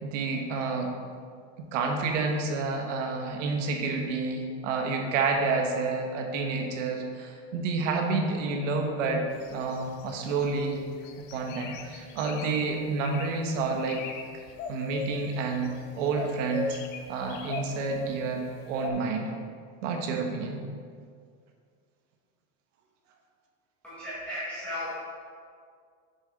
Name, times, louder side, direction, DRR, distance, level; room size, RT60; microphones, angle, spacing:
voice 1, 0.0-0.9 1.6-9.2 9.5-10.8 11.3-14.0 14.7-16.8 17.1-19.3 19.8-20.6, right 4 dB, 85° right, 3 dB, 1.2 m, -29 dB
sound 1, 9.4-10.6 11.0-12.6 13.0-13.4 13.7-14.2 14.5-15.8 16.1-18.2 18.8-18.9, left 5 dB, 30° left, 0.4 m, -37 dB
voice 2, 23.8-24.9, left 1 dB, 5° left, -13 dB, 1.7 m, -35 dB
7.0 x 6.8 x 4.0 m, 2.1 s
supercardioid pair, 170°, 36 cm